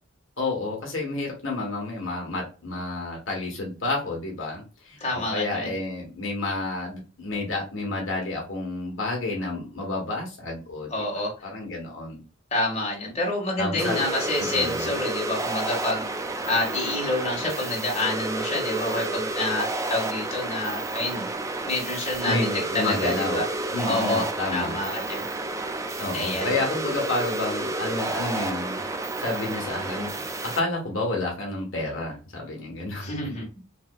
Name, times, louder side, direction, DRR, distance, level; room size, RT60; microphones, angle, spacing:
voice 1, 0.4-10.9 11.4-12.2 13.6-14.0 14.4-14.9 22.2-23.4 23.7-24.8 26.0-28.8 29.2-33.4, left 2 dB, 70° left, -1 dB, 1.1 m, -30 dB
voice 2, 5.0-5.7 10.9-11.3 12.5-16.0 16.5-21.3 21.6-23.4 23.9-24.3 24.5-25.2 26.1-26.6 33.0-33.5, left 2 dB, 30° left, -2 dB, 1.5 m, -28 dB
sound 1, 13.8-30.6, right 2 dB, 15° right, 0.4 m, -30 dB
4.0 x 2.8 x 2.2 m, 0.34 s
head